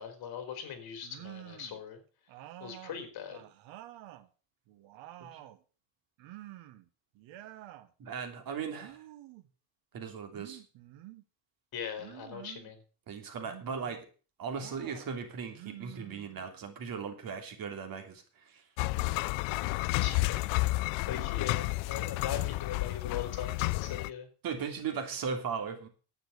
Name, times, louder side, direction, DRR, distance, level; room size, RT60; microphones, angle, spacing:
voice 1, 0.0-2.0 2.6-3.4 11.7-12.8 20.0-20.4 21.1-24.3, left 8 dB, 50° left, 8 dB, 3.7 m, -40 dB
sound 1, 1.0-1.8 2.3-4.3 4.7-5.6 6.2-6.9 7.1-7.9 8.7-9.5 10.3-11.2 12.0-12.7 13.4-14.0 14.5-15.1 15.5-16.6, right 15 dB, 75° right, 1.5 m, -49 dB
voice 2, 8.0-9.0 9.9-10.6 13.1-14.0 14.4-18.6 24.4-25.9, right 6 dB, 45° right, 6 dB, 3.0 m, -38 dB
sound 2, 18.8-24.1, left 21 dB, 85° left, 0.6 m, -31 dB
11.0 x 8.9 x 6.7 m, 0.37 s
cardioid pair, 140°, 46 cm